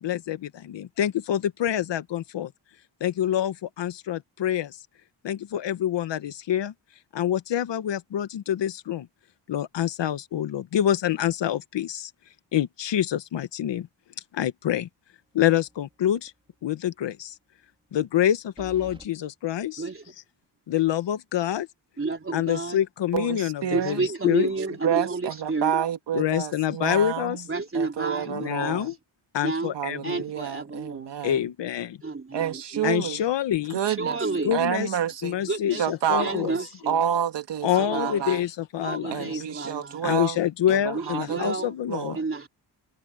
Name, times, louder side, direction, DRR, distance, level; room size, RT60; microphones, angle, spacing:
voice 1, 0.0-2.5 3.0-4.8 5.2-6.7 7.1-9.1 9.5-12.1 12.5-13.9 14.3-14.9 15.3-16.3 16.6-17.3 17.9-19.8 20.7-21.7 22.3-24.5 26.1-27.4 28.3-28.9 29.3-30.2 31.2-32.0 32.8-33.8 34.4-34.9 35.2-36.6 37.6-39.4 40.0-42.2, left 11 dB, 85° left, 1.4 m, -26 dB
sound 1, 15.6-15.9 16.3-16.4 18.6-19.1, right 1 dB, 10° right, 3.3 m, -46 dB
voice 2, 22.0-22.8 23.7-25.8 27.5-28.8 29.4-29.8 30.0-31.2 32.0-32.9 33.8-34.6 35.5-35.8 36.2-37.0 37.7-38.2 38.8-40.0 40.9-41.7 42.2-42.5, right 3 dB, 30° right, 3.7 m, -30 dB
voice 3, 23.1-24.0 24.7-27.4 27.7-28.9 29.7-31.4 32.3-33.2 33.7-34.2 34.5-35.4 35.7-36.5 36.9-38.4 39.1-40.4 40.7-41.5 41.9-42.2, right 9 dB, 75° right, 2.1 m, -29 dB
cardioid pair, 70°, 42 cm